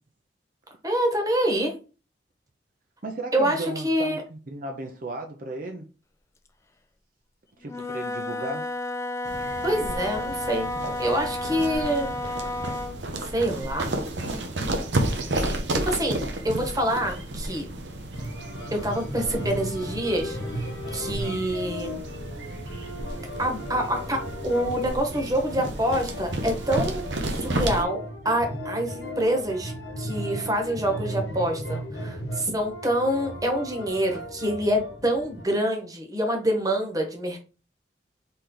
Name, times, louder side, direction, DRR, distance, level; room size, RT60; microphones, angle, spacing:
voice 1, 0.8-1.7 3.3-4.2 9.6-10.7 11.0-12.1 13.2-13.9 15.4-17.6 18.7-20.7 20.9-21.9 23.4-27.0 27.3-28.0 28.2-37.4, right 1 dB, 20° right, 1.2 m, -26 dB
voice 2, 3.0-5.9 7.6-8.7, right 2 dB, 50° right, 0.6 m, -35 dB
Wind instrument woodwind instrument, 7.6-13.0, left 2 dB, 15° left, 0.5 m, -32 dB
Jogger in the forest, 9.3-27.8, right 1 dB, 85° right, 0.9 m, -32 dB
sound 1, 18.1-35.4, equal, 65° left, 1.1 m, -36 dB
4.3 x 3.3 x 3.8 m
head